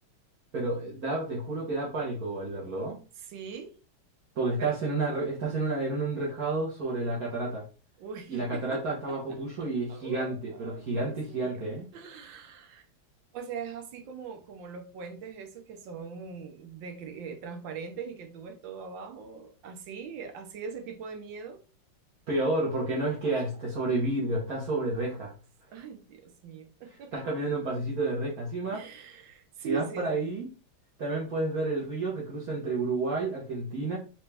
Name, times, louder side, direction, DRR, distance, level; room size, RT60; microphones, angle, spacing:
voice 1, 0.5-3.0 4.4-7.6 8.3-11.8 22.3-25.3 27.1-28.8 29.6-30.5 31.0-34.0, right 2 dB, 50° right, 1.4 m, -30 dB
voice 2, 3.2-3.7 4.6-4.8 8.0-8.8 9.1-12.8 13.3-21.6 23.2-23.4 25.7-27.3 28.7-30.2, right 6 dB, 70° right, 1.5 m, -42 dB
4.5 x 3.0 x 3.4 m
omnidirectional pair, 2.2 m